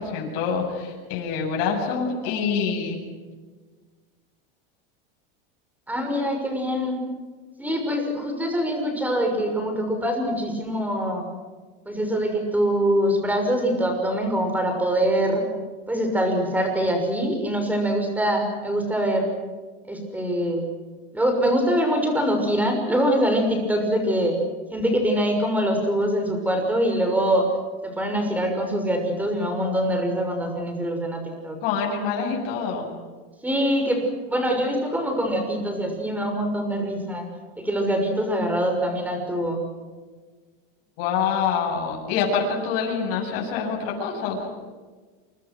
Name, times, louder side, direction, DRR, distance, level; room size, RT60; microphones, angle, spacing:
voice 1, 0.0-3.0 31.6-32.9 41.0-44.5, left 6 dB, 60° left, -1 dB, 7.9 m, -26 dB
voice 2, 5.9-7.0 7.6-11.3 11.8-15.4 15.9-19.3 19.9-20.6 21.1-24.4 24.7-27.5 27.8-31.6 33.4-37.3 37.6-39.6, equal, 5° right, 3 dB, 6.4 m, -24 dB
29.0 x 25.5 x 6.3 m, 1.4 s
supercardioid pair, 150°, 29 cm